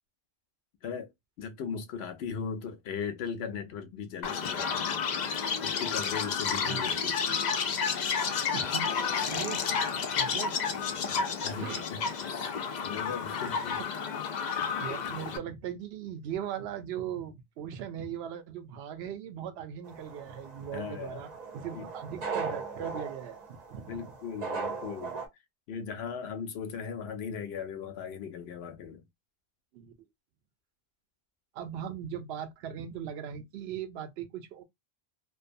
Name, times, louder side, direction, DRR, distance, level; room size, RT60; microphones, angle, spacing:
voice 1, 0.8-1.1 1.4-5.0 5.6-7.2 11.2-12.5 12.8-13.8 14.6-14.8 20.7-21.3 21.7-21.9 23.9-25.2 25.7-29.1, left 6 dB, 85° left, 0.8 m, -38 dB
Chirp tweet, 4.2-15.4, left 6 dB, 55° left, 0.5 m, -31 dB
voice 2, 6.6-7.0 8.5-8.9 9.2-9.7 10.1-10.8 11.1-11.2 11.6-11.8 14.8-24.1 29.7-30.1 31.5-34.6, right 9 dB, 80° right, 0.8 m, -39 dB
sound 1, 19.9-25.3, right 5 dB, 50° right, 0.7 m, -38 dB
2.5 x 2.2 x 2.5 m
omnidirectional pair, 1.0 m